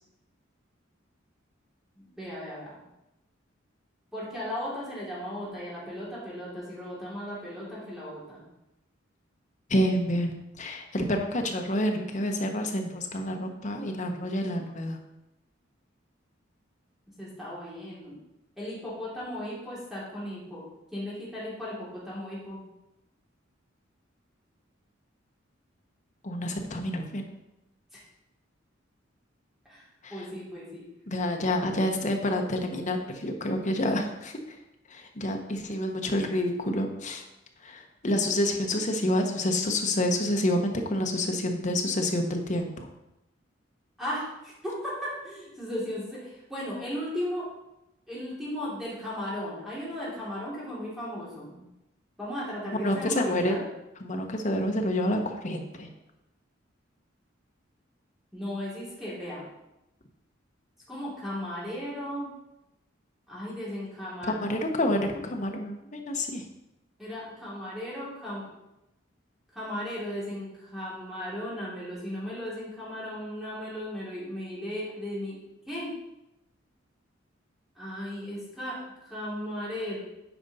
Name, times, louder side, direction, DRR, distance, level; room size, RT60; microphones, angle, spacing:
voice 1, 2.2-2.7 4.1-8.4 17.2-18.2 18.6-20.6 20.9-22.6 29.7-29.8 30.1-30.8 44.0-47.5 48.1-51.6 52.2-53.7 58.3-59.5 60.9-62.3 63.3-64.4 67.0-68.5 69.5-75.4 75.7-75.9 77.8-80.0, equal, ahead, -8 dB, 2.7 m, -36 dB
voice 2, 9.7-15.0 26.2-27.2 30.0-30.2 31.1-34.6 34.9-37.2 37.6-42.9 52.8-53.6 54.0-55.9 64.3-66.4, left 1 dB, 40° left, 3 dB, 1.0 m, -28 dB
9.1 x 5.2 x 4.1 m, 0.92 s
head